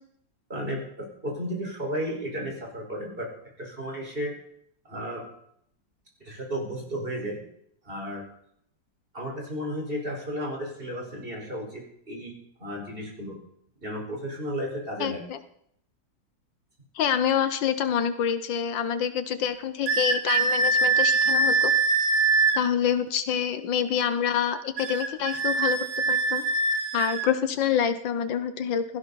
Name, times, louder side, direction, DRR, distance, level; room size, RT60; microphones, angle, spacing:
voice 1, 0.5-3.3 3.6-4.3 4.9-5.2 6.2-7.4 7.9-8.2 9.1-12.3 12.6-13.4 13.8-15.2, equal, 30° right, -1 dB, 5.2 m, -33 dB
voice 2, 15.0-15.4 17.0-21.7 22.5-25.8 26.1-26.4 26.9-28.8, left 8 dB, 80° left, 11 dB, 1.7 m, -26 dB
sound 1, 19.9-22.6 24.8-27.3, right 3 dB, 85° right, 2.3 m, -23 dB
17.0 x 15.5 x 4.2 m, 0.69 s
omnidirectional pair, 2.0 m